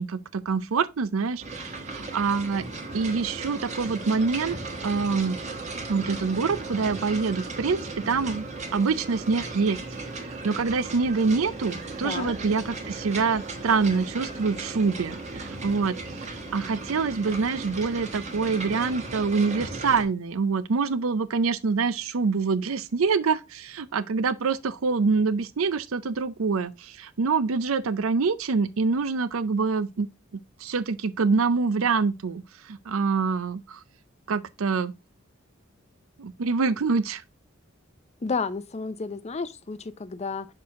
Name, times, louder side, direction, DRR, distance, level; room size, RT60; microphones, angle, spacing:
voice 1, 0.0-2.6 2.9-4.6 4.8-5.4 5.9-8.5 8.7-9.8 10.2-16.3 16.5-30.1 30.6-32.4 32.7-33.8 34.3-34.9 36.2-37.2, right 4 dB, 85° right, 0.5 m, -25 dB
sound 1, 1.4-20.0, right 2 dB, 35° right, 1.3 m, -36 dB
voice 2, 12.0-12.3 38.2-40.5, left 4 dB, 30° left, 0.5 m, -31 dB
6.1 x 4.5 x 3.6 m
head